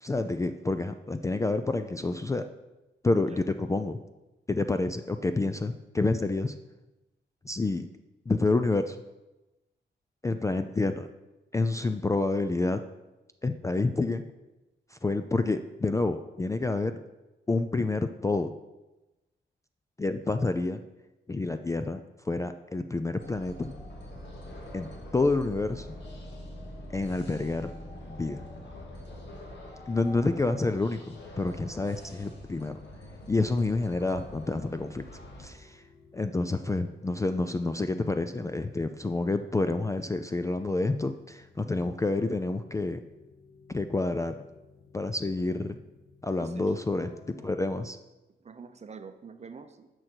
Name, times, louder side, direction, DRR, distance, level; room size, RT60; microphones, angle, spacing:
voice 1, 0.0-2.4 3.0-4.0 4.5-6.5 7.4-7.9 8.3-9.0 10.2-11.1 11.5-12.8 13.4-14.2 14.9-17.0 17.5-18.5 20.0-20.8 21.3-22.0 22.3-23.7 24.7-25.9 26.9-27.7 28.1-28.4 29.9-32.8 33.3-35.0 35.4-35.8 36.1-43.0 43.7-44.4 44.9-45.7 46.2-48.0, left 3 dB, 15° left, 8 dB, 0.3 m, -28 dB
sound 1, 23.2-35.5, left 1 dB, 65° left, 2.0 m, -44 dB
sound 2, 33.2-47.9, left 4 dB, 50° left, 2.5 m, -57 dB
voice 2, 46.4-46.7 48.4-49.9, right 5 dB, 35° right, 9 dB, 0.6 m, -46 dB
10.5 x 6.4 x 4.5 m, 1.0 s
wide cardioid pair, 135°, 20 cm